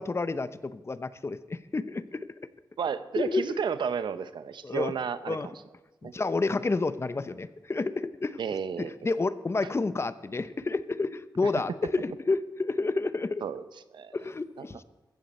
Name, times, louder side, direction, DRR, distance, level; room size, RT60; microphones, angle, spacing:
voice 1, 0.0-2.3 3.1-3.6 4.6-4.9 5.3-5.5 6.0-8.4 8.8-13.4 14.1-14.8, left 3 dB, 35° left, 13 dB, 0.7 m, -30 dB
voice 2, 2.8-5.5 6.0-6.1 8.4-8.9 11.4-11.5 13.4-13.6 13.9-14.1 14.6-14.7, right 6 dB, 80° right, 13 dB, 0.7 m, -32 dB
15.0 x 14.5 x 4.3 m, 1.1 s
cardioid pair, 70°, 8 cm